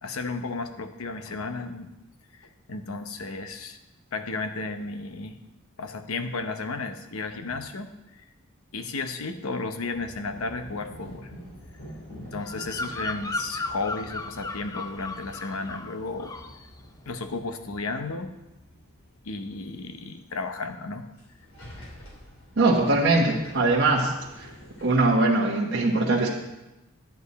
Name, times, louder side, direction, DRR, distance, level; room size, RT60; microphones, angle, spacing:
voice 1, 0.0-1.9 2.4-3.8 4.1-5.4 5.8-7.9 8.7-11.3 12.2-16.3 17.1-18.3 19.2-21.1, left 3 dB, 90° left, 8 dB, 0.9 m, -33 dB
sound 1, 9.8-24.9, equal, 70° left, 3.3 m, -47 dB
Bird vocalization bird call bird song, 12.4-15.9 16.2-16.6, left 2 dB, 15° left, 0.5 m, -35 dB
voice 2, 22.6-24.5 24.8-26.3, right 2 dB, 55° right, -3 dB, 1.2 m, -22 dB
11.0 x 9.3 x 4.1 m, 0.98 s
head